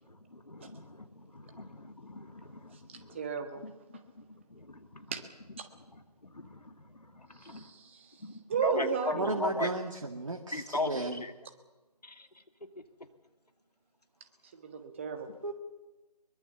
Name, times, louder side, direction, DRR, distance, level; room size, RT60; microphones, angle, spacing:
voice 1, 0.0-3.3 3.6-5.1 5.5-7.7 8.2-9.7 10.5-11.3 12.0-12.4, left 2 dB, 75° left, 7 dB, 2.6 m, -39 dB
voice 2, 2.9-3.6 5.1-5.2 5.6-5.7 7.4-8.0 8.5-9.3 14.6-15.3, right 5 dB, 20° right, 6 dB, 1.5 m, -33 dB
voice 3, 9.1-11.2 15.4-15.5, right 2 dB, 50° right, 2 dB, 2.0 m, -34 dB
23.0 x 22.5 x 7.1 m, 1.2 s
figure-of-eight pair, 160°, 21 cm